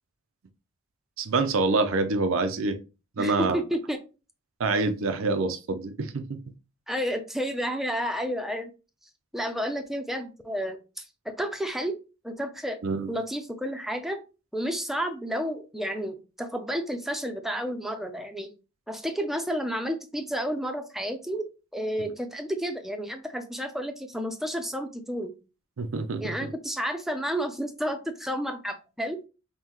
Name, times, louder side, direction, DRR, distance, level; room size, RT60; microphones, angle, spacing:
voice 1, 1.2-2.8 3.2-3.6 4.6-6.4 12.8-13.1 25.8-26.5, right 3 dB, 80° right, 8 dB, 0.5 m, -26 dB
voice 2, 3.2-4.0 6.9-8.7 9.3-12.0 12.2-12.8 13.1-14.2 14.5-18.5 18.9-21.4 21.7-25.3 26.2-29.2, equal, ahead, 6 dB, 0.5 m, -31 dB
5.5 x 2.1 x 3.0 m, 0.31 s
head